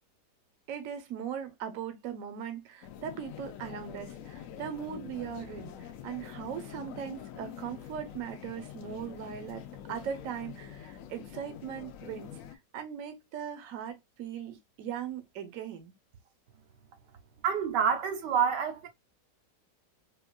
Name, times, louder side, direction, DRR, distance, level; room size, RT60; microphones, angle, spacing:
voice 1, 0.7-12.3 12.7-15.9, right 8 dB, 60° right, 1.0 m, -39 dB
sound 1, 2.8-12.6, left 10 dB, 80° left, 0.7 m, -45 dB
voice 2, 17.4-18.9, right 7 dB, 80° right, 1.3 m, -27 dB
4.4 x 2.4 x 2.2 m
omnidirectional pair, 1.9 m